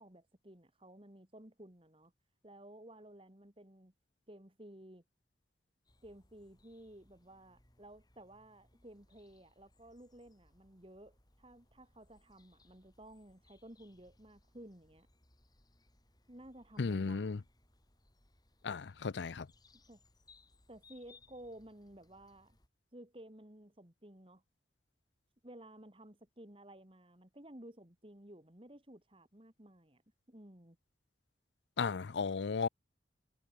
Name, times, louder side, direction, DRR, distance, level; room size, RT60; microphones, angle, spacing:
voice 1, 0.0-2.1 2.4-3.9 4.3-5.0 6.0-15.1 16.3-17.4 19.9-20.0 20.7-22.6 22.9-24.4 25.4-30.0 30.3-30.8, right 1 dB, 30° right, 2.6 m, -55 dB
sound 1, 5.9-22.7, left 3 dB, 20° left, 7.0 m, -68 dB
voice 2, 16.8-17.4 18.6-19.5 31.8-32.7, left 5 dB, 85° left, 0.5 m, -35 dB
head